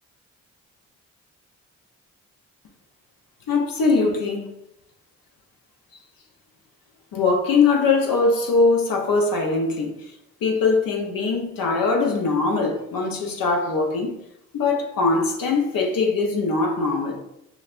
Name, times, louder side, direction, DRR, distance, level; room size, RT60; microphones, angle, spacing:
voice 1, 3.5-4.5 7.1-10.1 10.4-14.2 14.5-17.2, left 4 dB, 70° left, 0.9 m, -21 dB
6.1 x 2.1 x 2.5 m
supercardioid pair, 40°, 36 cm